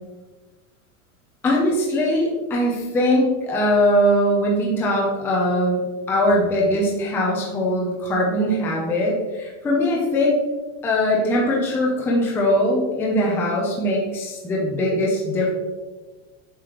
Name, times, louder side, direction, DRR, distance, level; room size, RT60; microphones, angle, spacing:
voice 1, 1.4-5.8 6.1-10.4 10.8-15.5, left 1 dB, 5° left, -3 dB, 0.5 m, -21 dB
7.6 x 5.0 x 3.0 m, 1.3 s
supercardioid pair, 170°, 36 cm